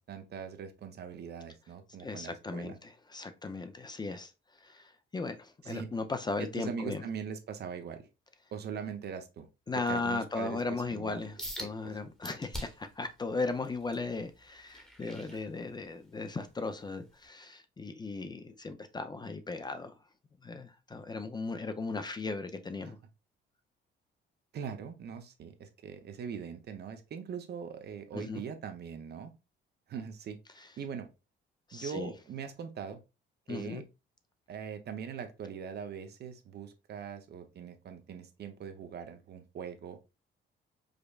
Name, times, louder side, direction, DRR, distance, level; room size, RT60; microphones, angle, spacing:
voice 1, 0.0-2.8 5.6-5.9 6.4-8.0 8.5-9.5 9.9-11.2 11.6-12.0 15.3-15.4 22.8-22.9 24.5-29.3 29.9-30.4 30.8-31.1 31.7-33.0 33.5-33.8 34.5-40.0, right 7 dB, 55° right, 0.6 m, -41 dB
voice 2, 2.0-4.3 4.6-7.0 9.7-19.9 20.4-23.0 28.1-28.4 30.6-30.7 31.7-32.1 33.5-33.8, left 3 dB, 20° left, 0.4 m, -37 dB
sound 1, 11.4-11.7 12.2-12.9 13.4-16.0 16.5-16.7 17.2-17.3, equal, 5° left, 1.0 m, -43 dB
4.9 x 2.1 x 2.3 m
cardioid pair, 90°, 20 cm